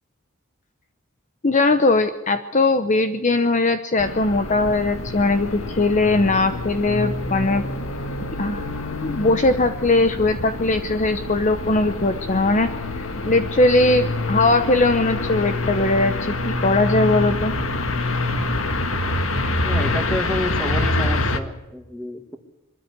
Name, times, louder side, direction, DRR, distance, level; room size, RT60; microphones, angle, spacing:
voice 1, 1.4-7.6 8.4-8.6 9.0-12.7 13.3-17.5, left 2 dB, 35° left, 9 dB, 0.9 m, -20 dB
sound 1, 4.0-21.4, left 2 dB, 80° left, 1.7 m, -26 dB
voice 2, 19.5-22.4, equal, 5° left, 6 dB, 2.1 m, -29 dB
23.0 x 13.5 x 9.8 m, 0.98 s
head